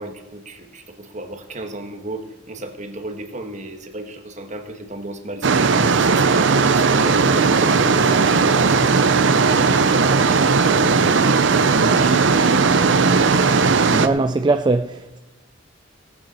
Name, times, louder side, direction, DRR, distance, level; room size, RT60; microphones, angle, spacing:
voice 1, 0.0-5.7 5.9-9.3 9.8-11.2 12.0-12.4, right 1 dB, 40° right, 1.3 m, -34 dB
sound 1, 5.4-14.1, right 4 dB, 65° right, 0.6 m, -16 dB
voice 2, 13.9-15.2, right 3 dB, 20° right, 0.3 m, -20 dB
17.5 x 8.9 x 4.2 m
head